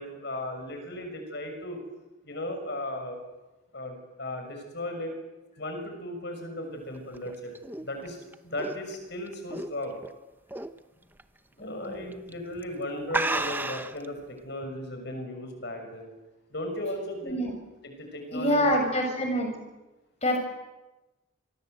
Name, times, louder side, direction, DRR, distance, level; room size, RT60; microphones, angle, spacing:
voice 1, 0.0-1.8 2.2-3.2 3.7-5.1 5.6-7.5 7.8-10.0 11.6-16.1 16.5-17.4 17.8-18.9, left 1 dB, 55° left, 5 dB, 6.4 m, -36 dB
sound 1, 7.0-10.1 10.5-10.8 11.2-11.3 12.1-12.3 12.6-12.7 13.1-14.0, right 2 dB, 10° right, 0.9 m, -32 dB
voice 2, 11.6-12.1 17.2-17.5 18.3-19.5 20.2-20.4, equal, 30° left, 3 dB, 6.2 m, -26 dB
29.0 x 24.5 x 8.0 m, 1.1 s
head